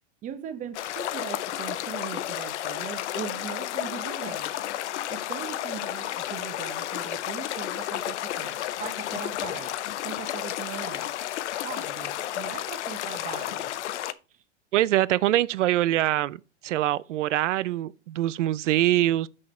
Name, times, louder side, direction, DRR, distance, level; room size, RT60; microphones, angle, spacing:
voice 1, 0.2-4.5 5.1-9.7 10.0-11.1 11.6-13.8 14.3-14.4, right 9 dB, 20° right, 0.9 m, -40 dB
sound 1, 0.7-14.1, left 12 dB, 70° left, 0.8 m, -32 dB
voice 2, 14.7-19.3, right 14 dB, 80° right, 0.6 m, -24 dB
7.3 x 6.5 x 4.3 m
supercardioid pair, 145°, 36 cm